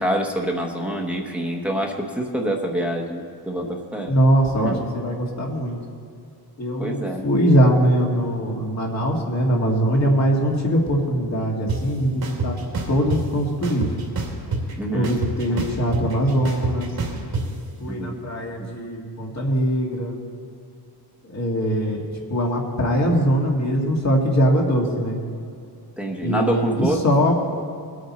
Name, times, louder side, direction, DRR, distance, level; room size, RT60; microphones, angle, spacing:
voice 1, 0.0-4.1 4.6-4.8 6.8-7.2 14.8-15.1 15.5-15.6 17.9-18.2 18.6-18.7 26.0-27.0, right 1 dB, 5° right, 0 dB, 1.0 m, -26 dB
voice 2, 4.1-5.8 6.6-12.6 12.9-13.9 14.9-16.9 17.8-20.2 21.3-22.0 22.3-25.2 26.2-27.3, equal, 40° left, 0 dB, 1.9 m, -21 dB
sound 1, 11.7-11.8 12.2-13.2 13.6-14.7 15.0-17.4, right 4 dB, 65° right, 2.6 m, -26 dB
21.0 x 8.8 x 4.2 m, 2.5 s
wide cardioid pair, 180°, 40 cm